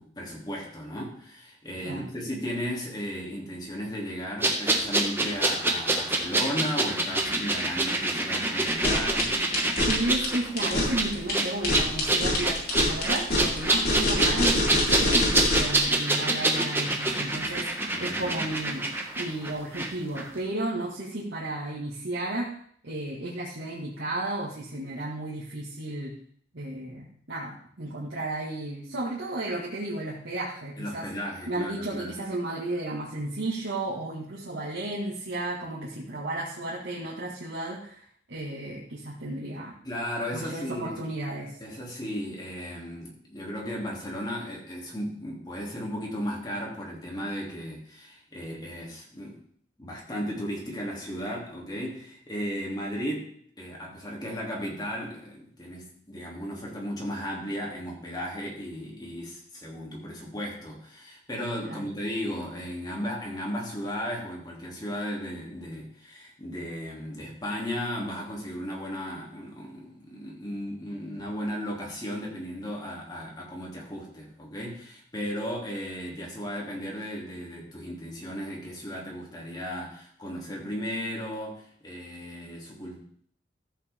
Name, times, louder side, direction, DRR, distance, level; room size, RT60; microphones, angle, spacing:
voice 1, 0.0-9.3 17.9-18.4 30.8-32.2 39.8-41.0 41.6-49.4 49.8-53.3 53.6-83.0, equal, 25° left, -2 dB, 2.9 m, -35 dB
sound 1, 4.4-19.9 20.2-20.3, right 2 dB, 15° right, 1.2 m, -26 dB
sound 2, 8.7-15.8, left 1 dB, 55° left, 4.0 m, -26 dB
voice 2, 9.9-18.9 19.2-22.5 22.8-26.1 26.5-31.1 31.5-38.0 38.3-39.7 40.3-41.6 61.6-61.9, right 2 dB, 85° right, -5 dB, 2.0 m, -33 dB
14.0 x 8.3 x 3.6 m, 0.62 s
head